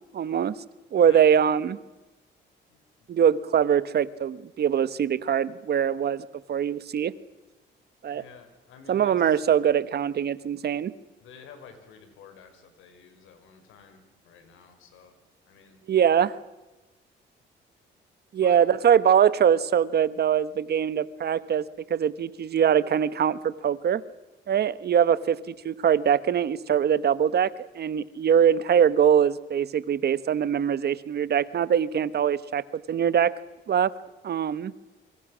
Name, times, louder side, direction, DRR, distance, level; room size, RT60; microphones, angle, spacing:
voice 1, 0.1-0.5 0.9-1.8 3.1-7.1 8.0-8.2 8.9-10.9 15.9-16.4 18.3-21.6 21.9-24.0 24.5-33.3 33.7-33.9 34.2-34.7, right 8 dB, 55° right, 16 dB, 1.1 m, -23 dB
voice 2, 8.1-9.4 11.2-15.1 15.5-15.8 18.4-18.6, left 6 dB, 90° left, 8 dB, 4.7 m, -50 dB
26.5 x 24.5 x 6.2 m, 1.1 s
cardioid pair, 90°, 20 cm